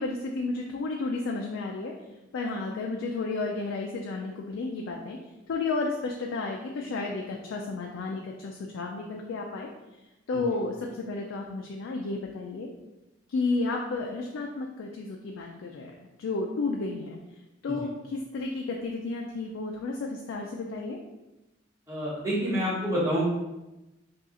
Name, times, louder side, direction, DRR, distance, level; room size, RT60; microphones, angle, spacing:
voice 1, 0.0-1.9 2.3-5.2 5.5-9.7 10.3-12.7 13.3-15.9 16.2-17.2 17.6-21.0, left 3 dB, 75° left, 0 dB, 0.3 m, -32 dB
voice 2, 21.9-23.3, equal, 15° right, -9 dB, 1.1 m, -27 dB
2.7 x 2.4 x 3.7 m, 0.99 s
head